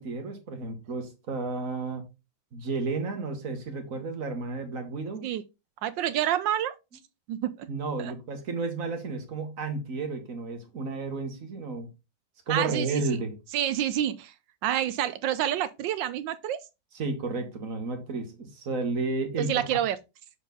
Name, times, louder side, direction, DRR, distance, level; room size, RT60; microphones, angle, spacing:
voice 1, 0.0-2.0 2.5-5.2 7.7-11.9 12.5-13.4 16.9-19.8, right 3 dB, 45° right, 1.7 m, -32 dB
voice 2, 5.8-6.7 7.3-7.7 8.0-8.1 12.5-13.0 13.5-14.3 14.6-16.6 19.5-20.0, right 11 dB, 75° right, 1.1 m, -28 dB
7.0 x 4.5 x 3.9 m
omnidirectional pair, 2.3 m